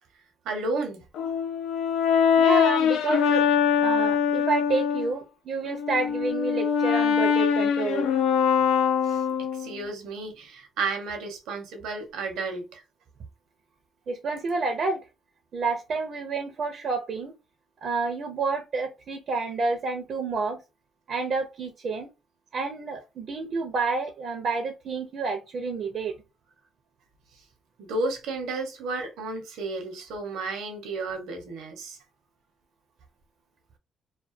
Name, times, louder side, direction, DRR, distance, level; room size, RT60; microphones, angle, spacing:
voice 1, 0.4-1.1 9.0-9.2 9.6-12.8 27.8-32.0, right 3 dB, 85° right, 0.8 m, -32 dB
Brass instrument, 1.2-5.1 5.7-9.8, left 7 dB, 80° left, 0.3 m, -23 dB
voice 2, 2.4-3.4 3.8-8.1 14.1-15.0 15.5-17.3 17.8-20.6 21.1-22.1 22.5-26.1, right 4 dB, 55° right, 0.5 m, -29 dB
2.3 x 2.2 x 2.5 m
cardioid pair, 110°, 0 cm